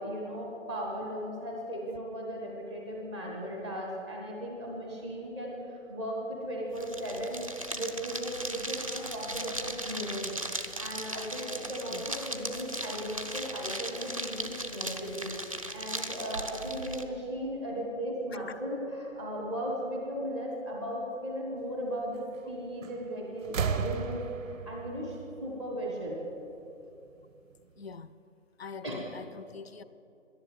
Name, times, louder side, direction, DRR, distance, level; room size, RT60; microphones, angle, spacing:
voice 1, 0.0-7.4 7.7-26.2 28.8-28.9, equal, 5° left, 0.7 m, -36 dB
sound 1, 6.7-17.0, right 1 dB, 30° right, 0.4 m, -38 dB
sound 2, 22.8-23.1 23.4-26.2 27.3-27.4, right 7 dB, 85° right, 0.7 m, -35 dB
voice 2, 27.8-28.1 28.6-29.8, left 5 dB, 55° left, 0.6 m, -44 dB
11.0 x 10.5 x 7.8 m
figure-of-eight pair, 160°, 39 cm